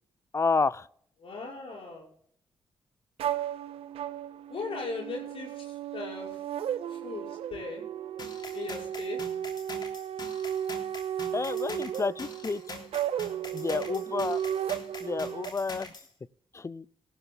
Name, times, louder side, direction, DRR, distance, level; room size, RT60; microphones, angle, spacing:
voice 1, 0.3-0.9 11.3-12.6 13.5-14.4 15.0-15.9 16.5-16.9, left 4 dB, 30° left, 20 dB, 0.4 m, -29 dB
voice 2, 1.2-2.1 4.5-6.4 6.9-7.8 8.5-9.2, left 3 dB, 70° left, -2 dB, 5.7 m, -38 dB
sound 1, 3.2-15.5, right 10 dB, 85° right, 0.7 m, -34 dB
sound 2, 8.2-16.1, left 3 dB, 50° left, 3.3 m, -44 dB
18.0 x 14.5 x 2.3 m, 0.64 s
cardioid pair, 65°, 10 cm